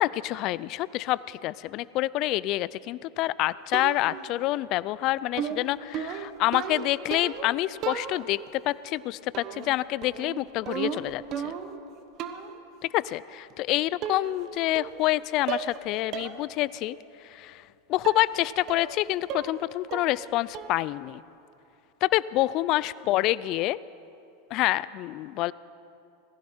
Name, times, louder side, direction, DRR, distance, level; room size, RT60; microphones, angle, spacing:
voice 1, 0.0-11.5 12.9-17.0 17.2-17.6 17.9-21.2 22.0-23.8 24.5-25.5, left 16 dB, 50° left, 19 dB, 0.4 m, -27 dB
sound 1, 3.7-4.3 5.4-7.5 7.8-8.5 9.3-9.8 10.0-11.8 12.2-12.6 13.5-13.6 14.0-14.5 14.8-15.2 15.5-15.8 16.1-16.4 16.8-16.9 18.0-18.3 18.7-19.0 19.3-19.6 19.9-20.3 20.5-20.9, right 8 dB, 45° right, 1.2 m, -35 dB
19.0 x 15.5 x 4.4 m, 2.7 s
hypercardioid pair, 95°, 0 cm